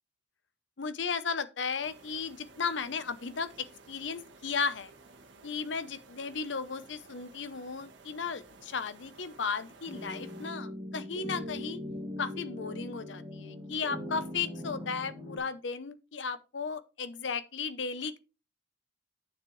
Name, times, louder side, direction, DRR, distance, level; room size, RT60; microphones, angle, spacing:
voice 1, 0.8-4.9 5.4-11.8 12.2-18.2, left 5 dB, 70° left, 0.7 m, -35 dB
sound 1, 1.8-10.5, right 3 dB, 70° right, 1.8 m, -55 dB
sound 2, 9.9-15.4, left 1 dB, 15° right, 3.0 m, -40 dB
9.1 x 7.0 x 3.1 m
head